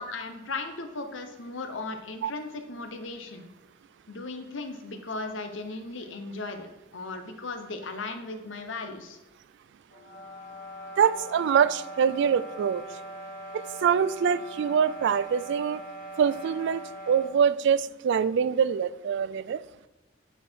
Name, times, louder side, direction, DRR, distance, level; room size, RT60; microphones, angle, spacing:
voice 1, 0.0-3.5 4.1-9.2, left 3 dB, 70° left, 0.9 m, -37 dB
sound 1, 9.9-17.4, right 1 dB, 50° left, 1.6 m, -41 dB
voice 2, 11.0-12.8 13.5-15.8 16.2-19.6, right 7 dB, 65° right, 0.3 m, -24 dB
9.1 x 4.3 x 4.5 m
head